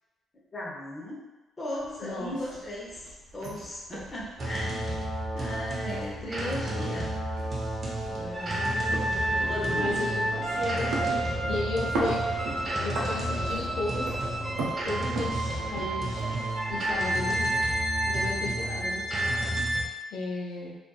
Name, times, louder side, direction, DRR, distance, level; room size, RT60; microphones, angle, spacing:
voice 1, 0.5-1.2 1.6-3.0 3.3-4.9 5.3-7.2 9.2-10.1, left 1 dB, 30° left, -4 dB, 0.8 m, -37 dB
sound 1, 1.8-18.8, right 2 dB, 85° right, 0.5 m, -40 dB
voice 2, 2.0-2.3 9.7-12.2 12.8-14.2 14.8-16.3 16.7-17.6 18.0-19.0 20.1-20.8, left 2 dB, 75° left, -3 dB, 0.5 m, -34 dB
sound 2, 4.4-19.8, right 1 dB, 40° right, 0.6 m, -30 dB
sound 3, 7.9-16.7, equal, 5° right, 0.9 m, -40 dB
2.5 x 2.4 x 2.3 m, 1.1 s
cardioid pair, 90°, 0 cm